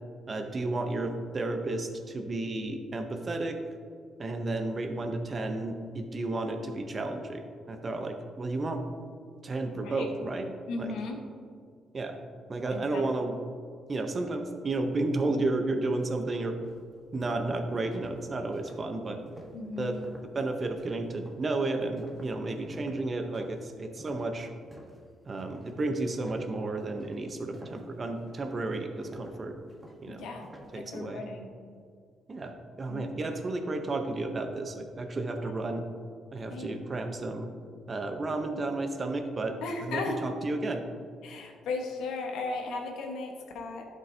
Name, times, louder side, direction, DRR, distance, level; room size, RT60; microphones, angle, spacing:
voice 1, 0.3-3.6 4.2-7.4 7.7-8.8 9.4-10.5 10.8-10.9 11.9-12.2 12.5-13.4 13.9-16.6 17.1-19.2 19.8-19.9 20.2-24.5 25.3-29.6 30.0-30.3 30.7-31.2 32.3-35.8 36.3-37.5 37.9-40.8, right 2 dB, 35° right, 5 dB, 0.7 m, -32 dB
voice 2, 10.7-11.2 12.7-13.0 19.5-20.0 30.1-30.5 30.7-31.5 32.9-33.1 35.4-35.8 36.5-36.8 39.6-40.2 41.2-43.8, left 3 dB, 85° left, 2 dB, 1.2 m, -36 dB
sound 1, 16.6-25.1 25.4-25.8 26.1-30.8, equal, 15° right, 1.3 m, -51 dB
11.5 x 5.3 x 2.7 m, 2.2 s
cardioid pair, 90°, 0 cm